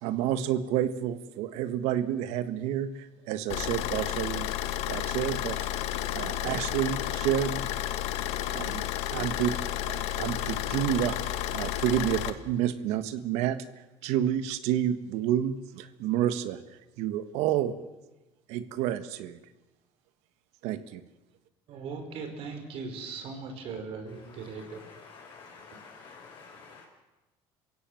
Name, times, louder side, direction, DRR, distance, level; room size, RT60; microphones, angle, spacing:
voice 1, 0.0-4.5 4.8-5.6 5.8-7.6 8.5-8.8 9.1-9.5 9.9-13.6 14.0-16.6 17.0-17.8 18.5-19.4 20.6-21.0, right 11 dB, 80° right, 12 dB, 1.6 m, -29 dB
Car / Idling, 3.5-12.3, left 12 dB, 75° left, 1.5 m, -32 dB
voice 2, 21.7-24.8, right 4 dB, 60° right, 5 dB, 5.1 m, -39 dB
voice 3, 24.2-26.8, left 5 dB, 50° left, -1 dB, 4.3 m, -50 dB
27.5 x 16.5 x 7.8 m, 1.1 s
cardioid pair, 125°, 11 cm